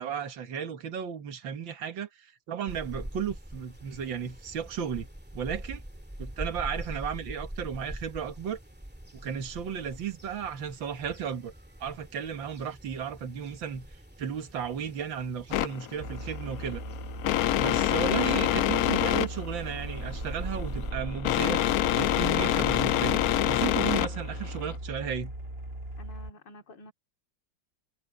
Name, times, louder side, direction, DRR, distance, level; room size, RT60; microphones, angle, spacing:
voice 1, 0.0-5.1 5.3-5.8 6.2-8.6 9.1-11.5 11.8-16.8 17.5-21.6 22.0-25.3, right 8 dB, 75° right, 2.3 m, -34 dB
sound 1, 2.7-20.9, equal, 5° right, 2.0 m, -45 dB
sound 2, 15.5-24.8, left 14 dB, 85° left, 0.8 m, -27 dB
sound 3, 16.0-26.3, right 1 dB, 30° right, 8.2 m, -38 dB
voice 2, 26.0-26.9, left 1 dB, 65° left, 3.4 m, -49 dB
omnidirectional pair, 2.1 m